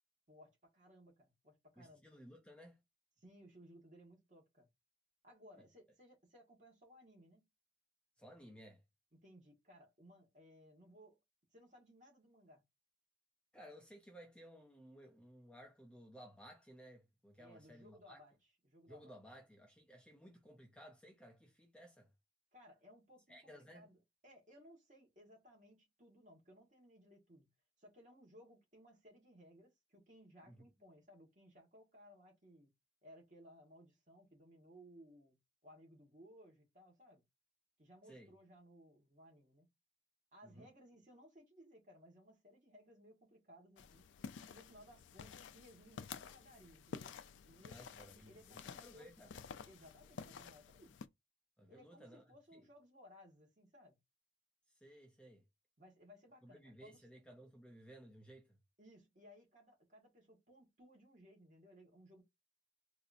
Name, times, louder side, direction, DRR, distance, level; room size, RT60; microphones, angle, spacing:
voice 1, 0.3-2.0 3.2-4.7 5.2-7.5 9.1-11.2 11.5-12.6 17.4-18.3 18.6-19.2 22.5-27.5 27.8-32.7 33.0-35.4 35.6-37.2 37.8-39.7 40.3-44.1 44.5-47.1 47.4-51.0 51.7-54.0 55.8-57.0 58.8-62.2, equal, 40° right, 1.4 m, -62 dB
voice 2, 1.8-2.8 5.6-5.7 8.2-8.8 13.5-18.2 18.9-22.1 23.3-23.9 30.5-30.7 38.0-38.3 40.4-40.7 47.7-49.3 51.6-52.2 52.5-52.7 54.7-55.4 56.4-58.6, equal, 5° left, 0.5 m, -58 dB
sound 1, 43.8-51.1, left 6 dB, 75° left, 0.3 m, -52 dB
4.0 x 2.5 x 2.6 m
head